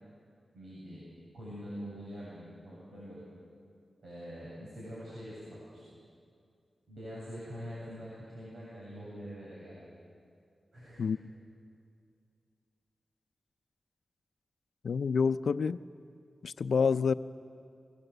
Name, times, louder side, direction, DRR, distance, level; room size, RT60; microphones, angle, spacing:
voice 1, 0.5-1.1 1.3-3.2 4.0-6.0 6.9-9.8 10.7-11.3, equal, 85° right, -7 dB, 7.9 m, -44 dB
voice 2, 14.8-15.8 16.4-17.1, left 5 dB, 80° left, 13 dB, 0.6 m, -28 dB
29.0 x 22.5 x 8.1 m, 2.3 s
wide cardioid pair, 95°, 0 cm